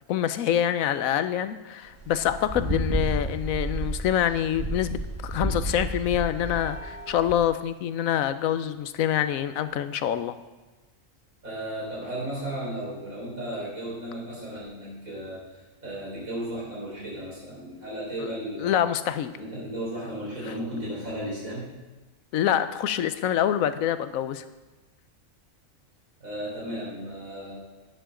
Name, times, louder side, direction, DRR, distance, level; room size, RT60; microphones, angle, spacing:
voice 1, 0.1-10.3 18.2-18.3 18.6-19.3 22.3-24.4, left 10 dB, 80° left, 12 dB, 1.1 m, -26 dB
sound 1, 1.9-7.4, right 1 dB, 20° right, 1.6 m, -31 dB
voice 2, 11.4-18.9 19.3-21.7 26.2-27.5, right 1 dB, 80° right, -6 dB, 4.9 m, -35 dB
11.0 x 10.5 x 3.8 m, 1.2 s
omnidirectional pair, 1.4 m